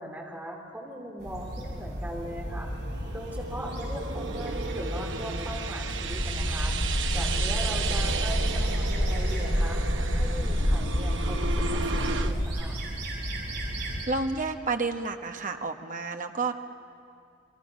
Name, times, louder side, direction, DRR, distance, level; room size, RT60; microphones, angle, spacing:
voice 1, 0.0-2.7 3.1-12.8, equal, 10° right, -1 dB, 3.8 m, -40 dB
sound 1, 1.2-14.1, right 1 dB, 60° right, 6.6 m, -36 dB
sound 2, 2.2-12.3, right 5 dB, 80° right, 1.1 m, -35 dB
sound 3, 6.1-12.5, equal, 80° left, 3.4 m, -28 dB
voice 2, 14.1-16.5, right 3 dB, 45° right, 5 dB, 1.1 m, -30 dB
28.5 x 23.0 x 6.4 m, 2.3 s
head